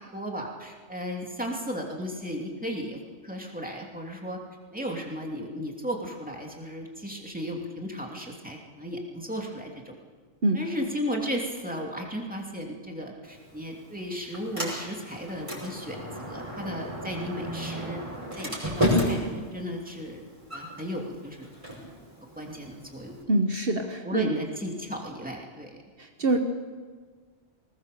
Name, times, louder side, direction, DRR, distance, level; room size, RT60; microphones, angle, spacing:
voice 1, 0.0-3.0 3.2-4.4 4.7-9.9 10.5-18.0 18.3-20.2 20.5-21.5 22.4-23.2 24.0-25.8 26.2-26.4, equal, 5° right, 0 dB, 2.9 m, -35 dB
Sliding door, 13.2-23.2, equal, 30° right, 5.7 m, -33 dB
voice 2, 23.3-24.3 26.0-26.4, right 2 dB, 60° right, 4 dB, 1.4 m, -25 dB
21.0 x 18.5 x 6.9 m, 1.5 s
omnidirectional pair, 1.1 m